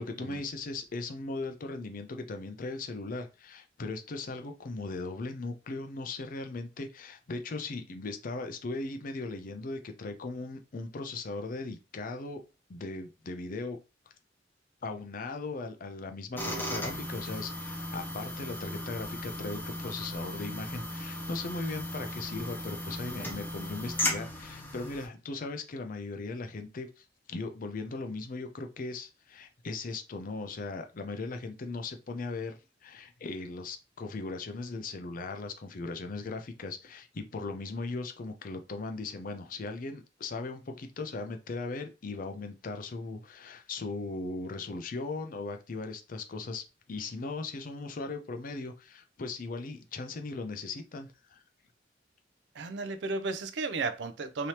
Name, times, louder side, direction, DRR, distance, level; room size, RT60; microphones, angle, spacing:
voice 1, 0.0-12.4 12.7-13.8 14.8-51.4, left 3 dB, 45° left, 0.5 m, -38 dB
sound 1, 16.4-25.1, left 1 dB, 10° left, 0.8 m, -36 dB
voice 2, 52.6-54.5, right 3 dB, 70° right, 0.4 m, -33 dB
3.3 x 2.8 x 2.8 m
head